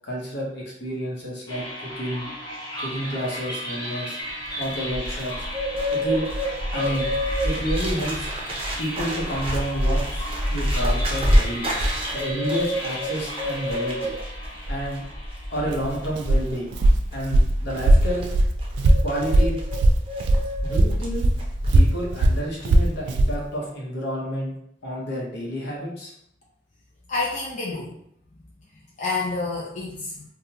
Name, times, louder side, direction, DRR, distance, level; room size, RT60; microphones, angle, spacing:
voice 1, 0.0-2.3 2.8-4.2 4.6-5.5 5.9-6.3 6.7-7.1 7.4-8.3 8.8-11.7 12.1-14.1 14.7-15.0 15.5-16.7 17.1-18.3 19.0-19.6 20.6-21.3 21.7-24.5 24.8-26.1, equal, 60° left, -3 dB, 1.0 m, -30 dB
sound 1, 1.5-16.7, equal, 20° left, 1.0 m, -35 dB
Bird, 4.3-22.1 22.3-22.7, equal, 30° right, 0.6 m, -28 dB
Walk footsteps, 15.7-20.5 20.7-23.4, right 1 dB, 65° right, 0.3 m, -19 dB
voice 2, 27.1-27.9 29.0-30.2, left 3 dB, 40° left, -6 dB, 0.5 m, -28 dB
3.6 x 2.3 x 2.8 m, 0.72 s
head